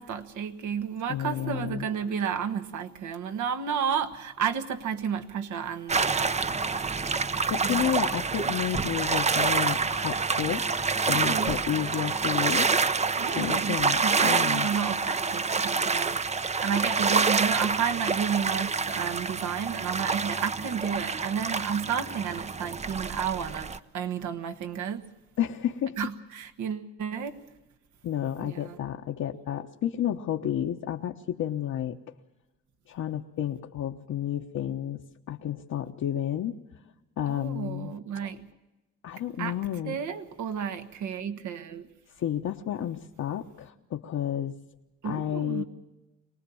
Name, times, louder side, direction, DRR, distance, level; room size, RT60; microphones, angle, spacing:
voice 1, 0.0-6.5 7.6-8.1 11.1-11.6 13.2-16.2 16.5-25.1 26.0-27.4 28.4-28.8 37.3-38.5 39.4-39.6 39.8-41.9 45.0-45.6, right 7 dB, 75° right, 1.6 m, -32 dB
voice 2, 1.1-1.9 7.2-10.7 11.1-12.7 13.3-14.7 25.4-26.0 28.0-32.0 32.9-36.6 37.2-37.9 39.0-40.0 42.2-44.5 45.0-45.6, left 10 dB, 65° left, 1.1 m, -31 dB
sound 1, 5.9-23.8, right 4 dB, 20° right, 0.6 m, -27 dB
24.0 x 19.0 x 7.1 m
cardioid pair, 90°, 30 cm